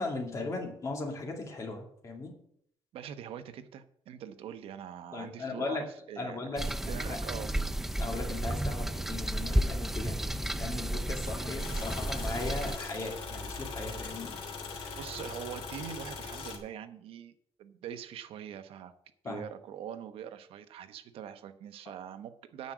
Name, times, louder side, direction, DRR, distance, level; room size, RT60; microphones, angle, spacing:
voice 1, 0.0-2.3 5.1-5.8 6.2-6.6 7.1-7.2 8.0-14.3 14.7-15.0 19.2-19.4, left 3 dB, 35° left, 1 dB, 2.3 m, -37 dB
voice 2, 2.9-7.6 10.7-10.8 15.0-17.3 17.6-18.9 19.2-22.7, right 9 dB, 75° right, 10 dB, 0.9 m, -43 dB
sound 1, 6.6-12.8, right 1 dB, 5° right, 0.3 m, -32 dB
sound 2, 11.6-16.6, left 4 dB, 65° left, 3.2 m, -41 dB
9.6 x 6.2 x 7.9 m, 0.68 s
cardioid pair, 170°, 10 cm